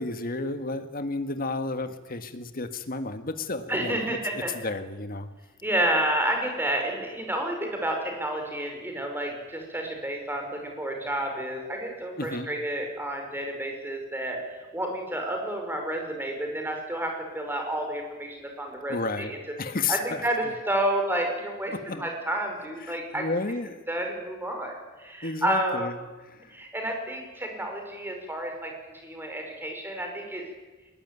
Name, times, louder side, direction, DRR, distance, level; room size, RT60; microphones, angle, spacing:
voice 1, 0.0-5.3 12.2-12.5 18.9-20.2 21.7-22.0 22.8-23.8 25.2-26.0 26.2-26.6, left 3 dB, 45° left, 9 dB, 1.7 m, -32 dB
voice 2, 3.7-4.5 5.6-19.4 19.9-23.2 23.9-25.9 26.5-30.4, right 1 dB, 10° right, 3 dB, 5.2 m, -30 dB
21.0 x 20.0 x 9.7 m, 1.2 s
head